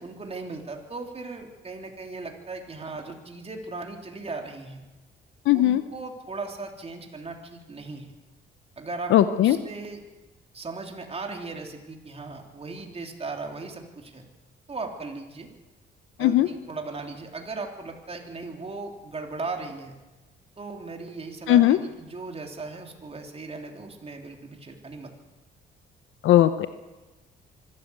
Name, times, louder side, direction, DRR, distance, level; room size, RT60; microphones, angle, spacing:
voice 1, 0.0-4.8 5.5-8.1 8.8-10.0 10.5-14.2 14.7-15.5 16.2-19.9 20.6-25.1, right 3 dB, 30° right, 2 dB, 3.4 m, -37 dB
voice 2, 5.5-5.8 9.1-9.6 16.2-16.5 21.5-21.8 26.2-26.7, left 13 dB, 80° left, 11 dB, 0.8 m, -18 dB
24.5 x 13.0 x 8.2 m, 1.2 s
cardioid pair, 90°, 20 cm